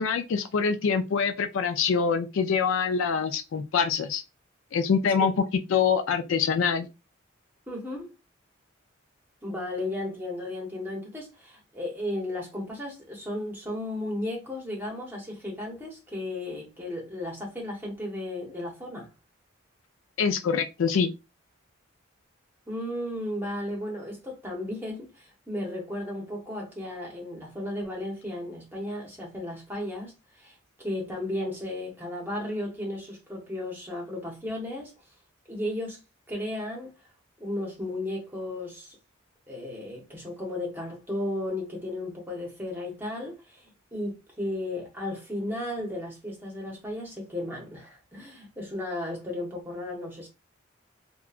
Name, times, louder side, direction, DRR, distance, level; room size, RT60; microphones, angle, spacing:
voice 1, 0.0-4.2 4.7-6.9 20.2-21.1, left 6 dB, 70° left, 0.4 m, -25 dB
voice 2, 7.7-8.1 9.4-19.1 22.7-34.9 35.5-36.0 36.3-36.9 37.4-39.0 39.5-50.3, left 1 dB, 10° right, 0.8 m, -34 dB
2.8 x 2.2 x 2.4 m
head